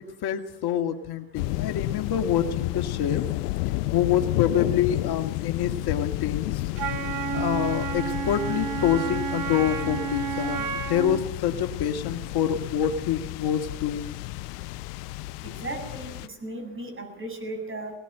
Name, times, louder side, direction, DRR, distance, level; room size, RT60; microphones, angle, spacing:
voice 1, 0.0-3.2 3.9-6.6 7.3-14.2, left 9 dB, 55° left, 6 dB, 2.1 m, -26 dB
sound 1, 1.3-16.3, left 18 dB, 90° left, 0.8 m, -31 dB
Wind instrument woodwind instrument, 6.8-11.3, right 8 dB, 45° right, 1.8 m, -31 dB
voice 2, 15.6-16.1 16.4-17.9, right 2 dB, 25° right, 5 dB, 8.0 m, -35 dB
20.5 x 19.5 x 9.2 m, 0.86 s
supercardioid pair, 90°, 46 cm